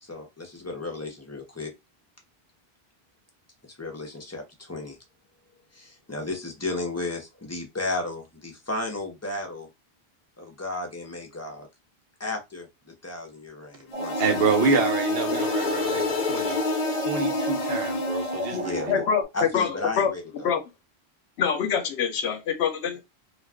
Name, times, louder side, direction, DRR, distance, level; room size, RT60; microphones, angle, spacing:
voice 1, 0.0-1.7 3.8-5.0 5.7-9.7 10.4-11.7 12.2-14.2 18.6-19.0 19.3-20.5, left 2 dB, 15° left, 0.7 m, -34 dB
sound 1, 13.9-18.7, left 3 dB, 50° left, 0.6 m, -28 dB
sound 2, 13.9-19.2, right 3 dB, 45° right, 0.7 m, -35 dB
voice 2, 14.2-16.6 16.9-18.9, right 4 dB, 70° right, 0.9 m, -27 dB
voice 3, 18.9-19.2 19.5-19.7 20.0-20.1 20.4-20.6 21.4-23.0, left 7 dB, 90° left, 0.9 m, -25 dB
2.5 x 2.3 x 3.4 m
omnidirectional pair, 1.1 m